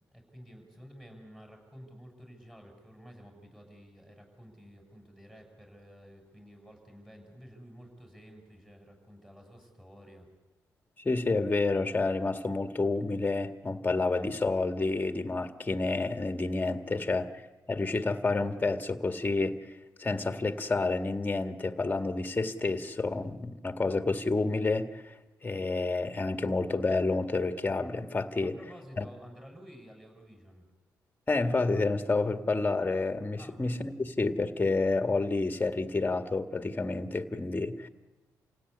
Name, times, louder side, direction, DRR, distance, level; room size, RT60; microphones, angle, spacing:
voice 1, 0.1-10.3 28.4-30.7 33.4-33.6, equal, 10° right, 7.6 m, -51 dB
voice 2, 11.0-17.3 17.7-19.7 20.0-25.1 25.4-28.6 29.0-29.1 31.3-37.9, left 3 dB, 25° left, 2.0 m, -29 dB
28.0 x 17.0 x 9.8 m
cardioid pair, 70°, 7 cm